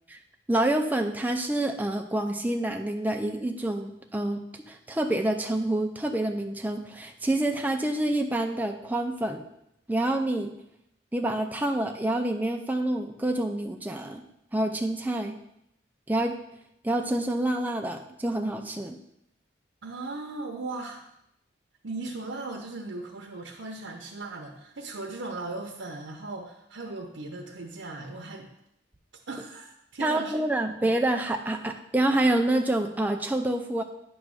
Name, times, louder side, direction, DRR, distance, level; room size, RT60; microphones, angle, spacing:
voice 1, 0.5-4.4 4.7-9.4 9.9-10.5 11.1-14.2 14.5-15.4 16.1-16.4 16.8-19.0 30.0-33.8, right 1 dB, 10° right, 4 dB, 0.5 m, -27 dB
voice 2, 19.8-21.1 21.8-28.5 29.3-30.4, right 2 dB, 90° right, 1 dB, 0.8 m, -37 dB
9.4 x 3.1 x 6.2 m, 0.79 s
head